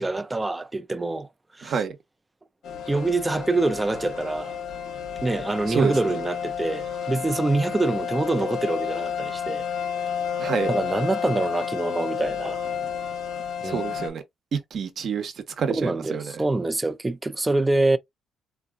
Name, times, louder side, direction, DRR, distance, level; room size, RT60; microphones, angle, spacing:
voice 1, 0.0-1.8 2.9-4.6 5.2-9.6 10.6-12.6 13.6-13.8 15.7-18.0, right 2 dB, 15° right, 0.5 m, -25 dB
voice 2, 1.6-2.0 5.7-6.2 10.4-10.7 13.6-14.2 14.7-16.2, right 6 dB, 60° right, 0.9 m, -28 dB
sound 1, 2.6-14.1, left 7 dB, 70° left, 1.0 m, -31 dB
3.7 x 2.7 x 2.5 m
cardioid pair, 90°, 0 cm